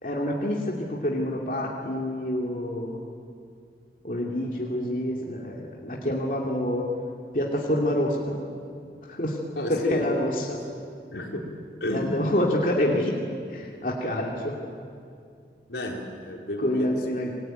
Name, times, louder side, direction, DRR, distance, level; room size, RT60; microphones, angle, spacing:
voice 1, 0.0-3.0 4.0-6.9 7.3-8.4 9.1-9.4 9.7-10.6 11.9-13.2 13.5-14.6 16.6-17.3, left 1 dB, 50° left, -2 dB, 2.7 m, -27 dB
voice 2, 9.6-10.0 10.7-10.8 11.1-11.4 11.8-12.1 14.2-14.3 15.7-16.9, left 1 dB, 80° left, 0 dB, 4.4 m, -31 dB
28.0 x 20.5 x 9.1 m, 2.3 s
head